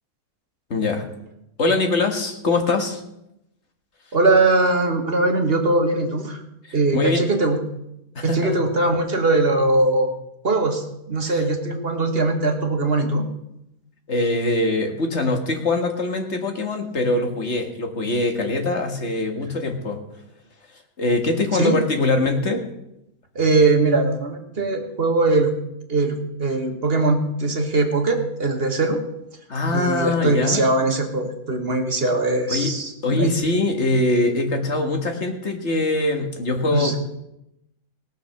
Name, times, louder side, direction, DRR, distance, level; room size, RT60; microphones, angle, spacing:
voice 1, 0.7-1.1 1.6-3.0 6.9-7.3 8.2-8.6 11.2-11.4 14.1-20.0 21.0-22.6 29.5-30.6 32.5-32.7 33.0-37.0, left 2 dB, 45° left, 4 dB, 1.8 m, -22 dB
voice 2, 4.1-6.4 6.7-7.6 8.2-10.1 10.4-13.3 21.5-21.8 23.3-25.5 25.9-29.0 29.7-33.3 36.7-37.0, right 2 dB, 40° right, 4 dB, 1.6 m, -21 dB
18.0 x 6.7 x 6.5 m, 0.84 s
omnidirectional pair, 1.6 m